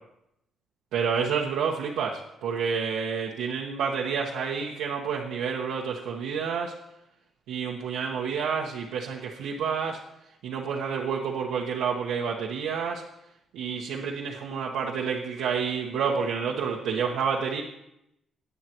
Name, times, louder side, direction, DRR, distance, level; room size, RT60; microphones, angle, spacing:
voice 1, 0.9-6.7 7.5-10.0 10.4-13.0 13.5-17.6, right 6 dB, 90° right, -3 dB, 1.1 m, -29 dB
18.0 x 9.4 x 3.0 m, 0.83 s
cardioid pair, 90°, 0 cm